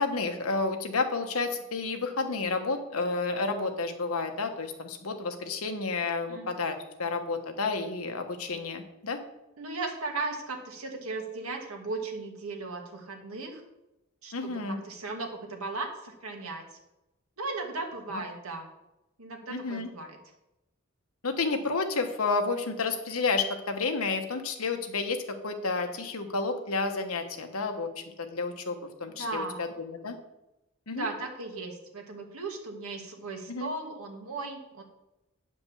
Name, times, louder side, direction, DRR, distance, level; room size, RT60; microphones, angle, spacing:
voice 1, 0.0-9.2 14.3-14.8 18.1-18.2 19.5-19.9 21.2-30.2 30.9-31.1 33.5-33.7, left 3 dB, 85° left, 5 dB, 1.3 m, -31 dB
voice 2, 9.6-13.6 14.2-16.7 17.4-18.7 19.2-20.2 29.1-29.6 30.9-34.8, right 3 dB, 85° right, 2 dB, 1.9 m, -36 dB
9.4 x 5.2 x 7.1 m, 0.93 s
head